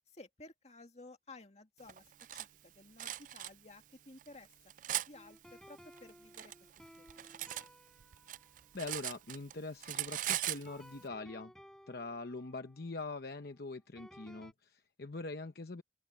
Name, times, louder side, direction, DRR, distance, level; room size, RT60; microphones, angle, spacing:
voice 1, 0.1-4.5 4.9-6.5 7.0-7.3 7.5-7.7, left 2 dB, 40° left, 2.0 m, -55 dB
Cutlery silverware, 1.9-2.5 3.0-3.5 4.2-5.1 6.0-7.7 8.0-9.5 9.8-10.7, right 13 dB, 45° right, 0.3 m, -39 dB
My First Comp in a long time, 5.1-10.0 10.7-14.5, equal, 5° left, 7.1 m, -59 dB
voice 2, 8.7-11.5 11.9-15.8, left 3 dB, 55° left, 0.9 m, -43 dB
open air
head